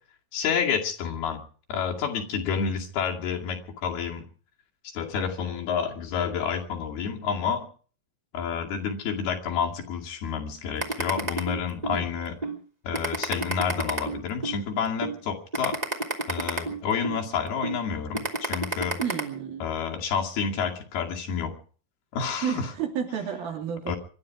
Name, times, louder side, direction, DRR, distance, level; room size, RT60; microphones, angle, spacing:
voice 1, 0.3-1.4 1.7-4.3 4.9-7.7 8.3-12.4 12.8-15.8 16.3-19.0 19.6-21.6 22.1-22.7 23.9-24.0, left 6 dB, 80° left, 0 dB, 4.3 m, -29 dB
sound 1, 10.8-12.0 12.4-12.6 12.9-14.6 15.0-15.2 15.5-17.2 17.6-17.8 18.1-19.2, right 2 dB, 15° right, 1.7 m, -29 dB
voice 2, 19.0-19.7 22.4-24.0, right 8 dB, 70° right, 3 dB, 4.7 m, -31 dB
25.0 x 12.0 x 4.8 m, 0.42 s
omnidirectional pair, 4.4 m